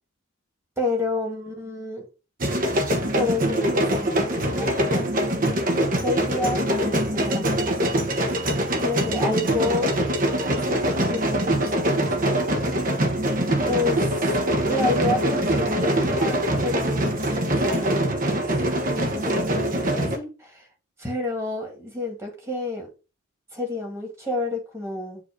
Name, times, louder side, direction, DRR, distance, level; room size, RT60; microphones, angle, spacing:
voice 1, 0.8-2.1 3.1-5.1 5.9-7.7 8.8-10.0 10.6-12.4 13.6-14.2 14.7-17.3 17.6-18.1 18.5-18.6 18.9-19.4 19.7-20.7 21.0-22.9 23.5-25.2, left 2 dB, 10° right, 1.9 m, -29 dB
sound 1, 2.4-20.2, right 1 dB, 40° right, 1.1 m, -23 dB
7.6 x 2.7 x 5.1 m
head